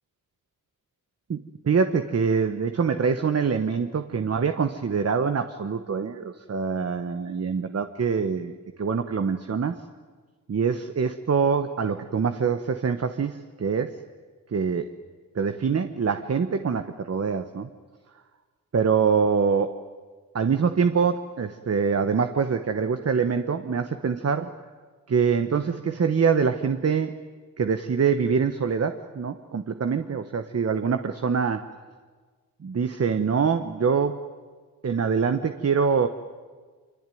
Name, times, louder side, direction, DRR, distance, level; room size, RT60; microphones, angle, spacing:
voice 1, 1.3-9.8 10.5-14.0 14.5-14.9 15.3-17.7 18.7-19.8 20.3-24.5 25.1-27.2 27.6-31.7 32.6-34.2 34.8-36.1, right 6 dB, 50° right, 8 dB, 1.2 m, -24 dB
26.0 x 24.5 x 9.3 m, 1.5 s
cardioid pair, 75°, 32 cm